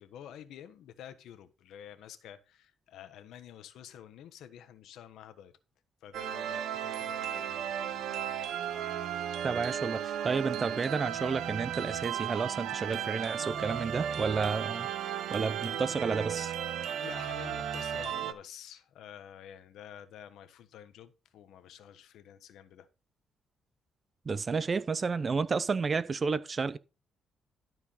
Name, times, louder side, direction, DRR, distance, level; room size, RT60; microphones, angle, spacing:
voice 1, 0.0-5.5 6.0-8.3 17.0-22.9, left 10 dB, 80° left, 1.2 m, -49 dB
sound 1, 6.1-18.3, right 9 dB, 75° right, 1.0 m, -35 dB
voice 2, 9.4-14.9 15.3-16.5 24.3-26.8, right 4 dB, 35° right, 0.6 m, -31 dB
12.5 x 4.7 x 5.6 m
cardioid pair, 90°, 0 cm